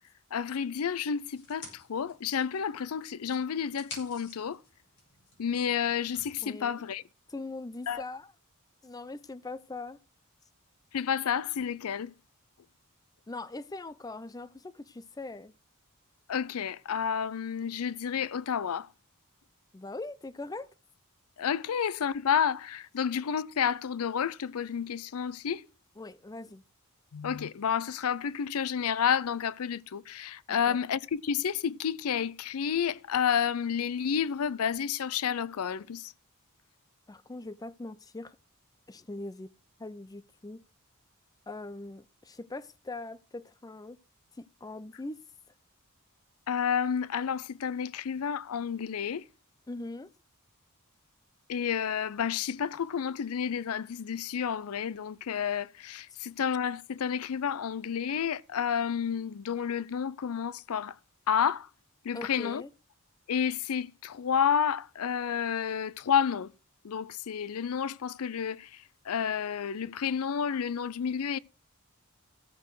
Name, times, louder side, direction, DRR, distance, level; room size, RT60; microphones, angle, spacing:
voice 1, 0.3-4.6 5.4-7.0 7.9-8.0 10.9-12.1 16.3-18.9 21.4-25.7 27.1-36.1 46.5-49.2 51.5-61.0 61.3-61.7 62.0-62.6 63.3-66.5 66.8-71.4, left 7 dB, 75° left, 0.5 m, -30 dB
sound 1, 1.3-2.9 3.2-6.4, left 3 dB, 50° left, 5.3 m, -50 dB
voice 2, 6.4-6.8 7.3-8.3 8.8-10.0 13.3-15.5 19.7-20.7 26.0-26.6 30.5-30.8 37.1-38.4 38.9-39.5 39.8-40.6 41.5-44.0 44.3-45.2 49.7-50.1 62.1-62.7, left 2 dB, 15° left, 0.4 m, -41 dB
14.0 x 6.7 x 4.7 m
head